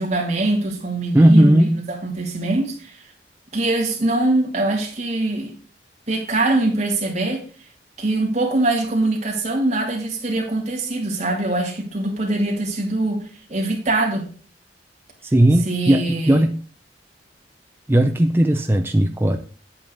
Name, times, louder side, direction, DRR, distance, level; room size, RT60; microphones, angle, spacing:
voice 1, 0.0-3.0 3.5-5.5 6.1-7.5 8.0-13.2 13.5-14.3 15.7-16.4, right 2 dB, 40° right, 2.8 m, -23 dB
voice 2, 1.1-1.8 15.2-16.6 17.9-19.4, right 1 dB, 15° right, 0.5 m, -16 dB
8.9 x 8.6 x 3.9 m
head